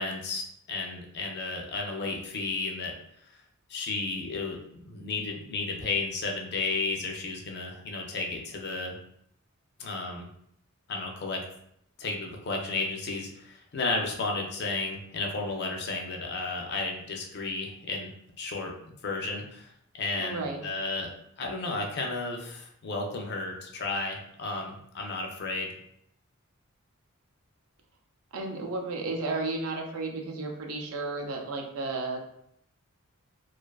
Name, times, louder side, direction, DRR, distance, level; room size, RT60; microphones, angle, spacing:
voice 1, 0.0-2.9 3.7-9.0 9.8-10.3 10.9-11.4 12.0-18.1 18.4-18.7 19.0-19.7 20.0-21.1 21.4-25.7, left 3 dB, 50° left, 2 dB, 0.4 m, -33 dB
voice 2, 20.2-20.6 28.3-32.3, right 3 dB, 75° right, 2 dB, 0.5 m, -33 dB
2.4 x 2.3 x 2.3 m, 0.71 s
head